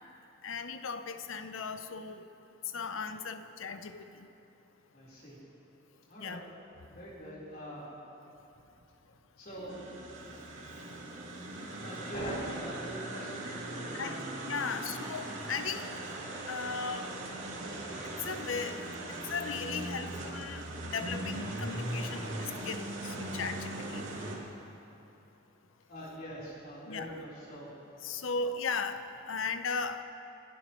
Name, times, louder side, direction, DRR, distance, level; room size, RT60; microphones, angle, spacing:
voice 1, 0.4-2.3 2.7-4.3 6.2-6.4 13.5-13.6 14.0-15.9 16.5-17.1 18.2-18.9 19.2-24.0 26.9-27.2 28.0-30.0, left 5 dB, 85° left, 9 dB, 0.7 m, -37 dB
voice 2, 4.9-5.4 6.1-6.4 6.9-7.9 9.4-9.8 11.8-14.1 14.5-14.7 25.9-27.7, right 1 dB, 45° left, -7 dB, 4.1 m, -42 dB
sound 1, 9.7-24.4, right 1 dB, 75° right, 2.6 m, -39 dB
29.0 x 11.0 x 3.2 m, 2.9 s
head